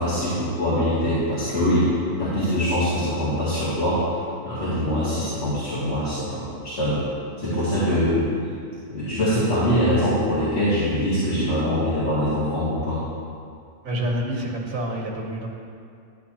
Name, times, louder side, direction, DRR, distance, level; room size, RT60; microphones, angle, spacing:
voice 1, 0.0-1.9 2.2-4.2 4.5-7.0 7.4-8.3 8.9-13.0, equal, 55° left, -11 dB, 2.5 m, -23 dB
voice 2, 13.8-15.5, equal, 80° right, -1 dB, 1.6 m, -28 dB
12.5 x 9.1 x 2.8 m, 2.3 s
omnidirectional pair, 1.4 m